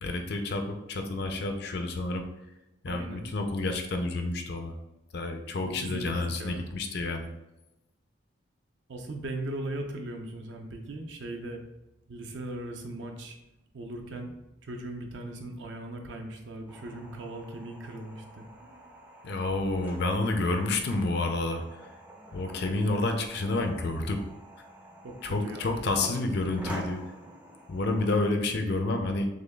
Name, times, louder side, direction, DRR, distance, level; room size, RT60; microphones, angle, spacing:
voice 1, 0.0-2.2 2.8-4.7 5.1-7.3 19.2-21.8 22.3-24.2 25.2-27.0 27.7-29.3, left 2 dB, 55° left, 5 dB, 0.4 m, -29 dB
voice 2, 2.9-3.2 5.7-6.6 8.9-11.6 12.1-13.4 13.7-14.3 14.6-18.5 25.0-25.8, right 1 dB, 65° right, 4 dB, 0.5 m, -39 dB
sound 1, 16.7-28.3, equal, 10° right, 0.4 m, -47 dB
6.2 x 2.3 x 2.2 m, 0.96 s
head